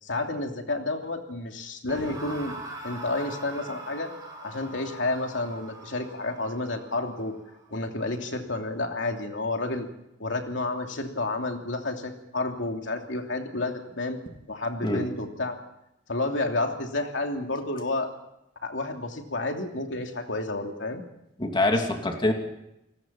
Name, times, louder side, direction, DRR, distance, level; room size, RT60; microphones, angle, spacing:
voice 1, 0.0-2.5 2.8-4.1 4.4-7.3 7.7-9.9 10.2-14.2 14.5-15.6 16.1-18.1 18.6-21.0, left 2 dB, 80° left, 3 dB, 3.0 m, -30 dB
sound 1, 1.9-9.0, right 1 dB, 20° right, 6.3 m, -43 dB
voice 2, 21.4-22.3, left 2 dB, 25° left, 3 dB, 2.8 m, -24 dB
29.0 x 19.0 x 5.9 m, 0.84 s
head